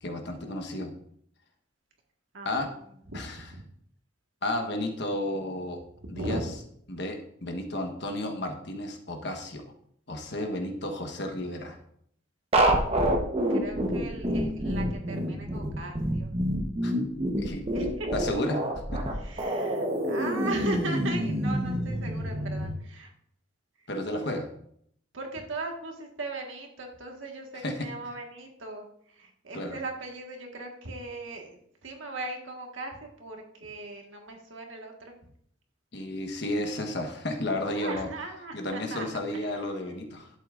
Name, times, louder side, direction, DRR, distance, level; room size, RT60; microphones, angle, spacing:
voice 1, 0.0-0.9 2.4-2.7 3.1-3.4 4.4-5.8 6.1-6.4 6.9-9.6 10.1-11.8 16.8-16.9 17.4-17.6 18.1-18.6 18.9-19.0 23.9-24.5 27.6-27.7 29.5-29.8 35.9-38.1 38.5-40.3, left 1 dB, 60° left, 3 dB, 1.2 m, -32 dB
voice 2, 2.3-3.6 6.0-6.6 13.5-16.3 17.7-18.1 19.1-23.1 23.8-23.9 25.1-35.2 37.7-39.0 39.3-39.5, right 2 dB, 80° right, 2 dB, 1.7 m, -39 dB
sound 1, 12.5-22.7, right 1 dB, 30° right, 1.1 m, -27 dB
11.5 x 7.9 x 2.6 m, 0.69 s
head